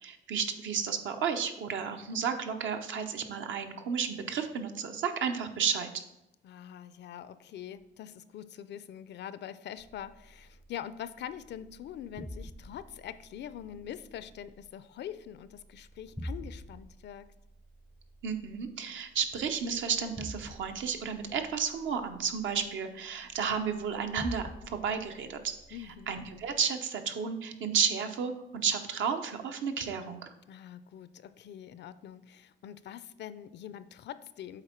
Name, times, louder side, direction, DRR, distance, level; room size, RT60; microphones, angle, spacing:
voice 1, 0.0-5.9 18.2-25.5 26.1-30.3, right 6 dB, 75° right, 6 dB, 0.8 m, -32 dB
voice 2, 6.4-17.3 25.7-26.1 30.5-34.6, left 10 dB, 60° left, 14 dB, 0.4 m, -44 dB
sound 1, 9.8-26.6, equal, ahead, 0.4 m, -48 dB
8.0 x 3.6 x 4.4 m, 0.88 s
cardioid pair, 90°, 20 cm